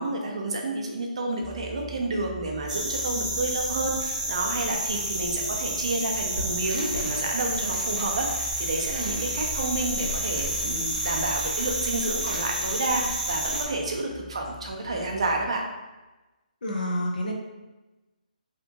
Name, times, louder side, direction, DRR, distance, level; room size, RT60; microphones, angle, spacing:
voice 1, 0.0-15.6, right 2 dB, 40° right, 1 dB, 0.4 m, -30 dB
sound 1, 1.4-15.6, equal, ahead, 1.0 m, -44 dB
sound 2, 2.7-13.6, right 1 dB, 55° right, 0.7 m, -30 dB
sound 3, 6.6-13.7, left 1 dB, 85° left, 1.0 m, -44 dB
voice 2, 16.6-17.3, equal, 65° left, 0 dB, 0.6 m, -28 dB
2.8 x 2.4 x 2.5 m, 1.1 s
hypercardioid pair, 180°, 5 cm